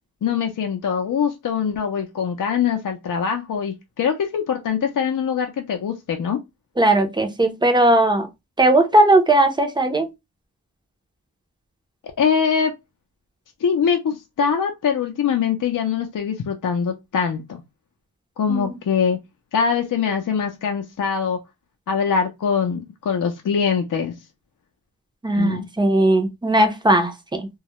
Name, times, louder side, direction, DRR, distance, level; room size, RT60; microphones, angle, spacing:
voice 1, 0.2-6.4 12.2-12.7 13.6-17.6 18.4-19.2 19.5-21.4 21.9-24.1 25.4-25.7, left 6 dB, 60° left, 0.5 m, -23 dB
voice 2, 6.8-8.3 8.6-10.1 18.5-18.7 25.2-27.5, right 1 dB, 15° right, 0.5 m, -18 dB
2.2 x 2.0 x 2.8 m
wide cardioid pair, 105°, 37 cm